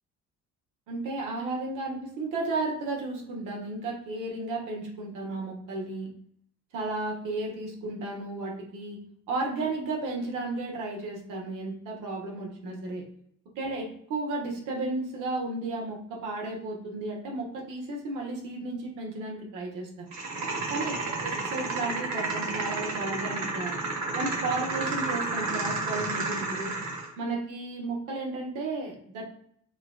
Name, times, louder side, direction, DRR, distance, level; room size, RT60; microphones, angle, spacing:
voice 1, 0.9-6.1 6.7-9.0 9.3-13.0 13.6-20.1 20.7-23.7 24.1-26.7 27.2-29.2, right 2 dB, 90° right, -1 dB, 1.0 m, -33 dB
sound 1, 20.1-27.1, right 3 dB, 65° right, 1.3 m, -31 dB
5.7 x 2.4 x 2.3 m, 0.66 s
cardioid pair, 90°, 30 cm